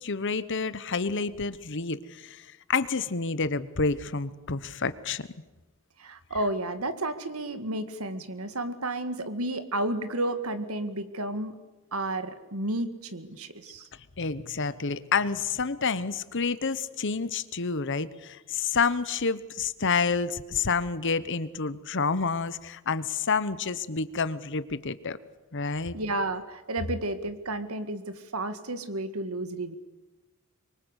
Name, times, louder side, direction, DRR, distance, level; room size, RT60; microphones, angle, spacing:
voice 1, 0.0-5.3 14.2-25.2 25.5-25.9, left 4 dB, 60° left, 15 dB, 1.1 m, -29 dB
voice 2, 6.0-11.6 11.9-13.9 25.9-29.8, right 1 dB, 80° right, 10 dB, 2.0 m, -32 dB
25.0 x 23.5 x 8.3 m, 1.2 s
head